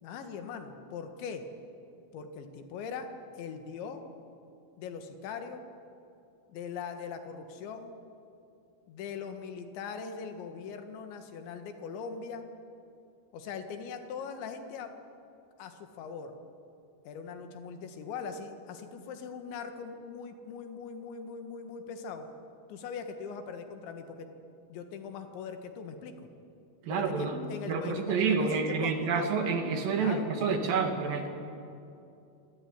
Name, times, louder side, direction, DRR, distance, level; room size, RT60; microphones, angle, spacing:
voice 1, 0.0-1.4 2.1-3.1 3.3-4.0 4.8-5.6 6.5-7.9 8.9-12.5 13.3-14.9 15.6-16.4 17.1-22.3 22.7-24.3 24.7-26.3 26.9-29.3 30.0-30.3, left 6 dB, 80° left, 6 dB, 4.0 m, -41 dB
voice 2, 26.9-31.3, right 5 dB, 55° right, 5 dB, 3.5 m, -29 dB
26.5 x 19.5 x 9.7 m, 2.7 s
omnidirectional pair, 5.2 m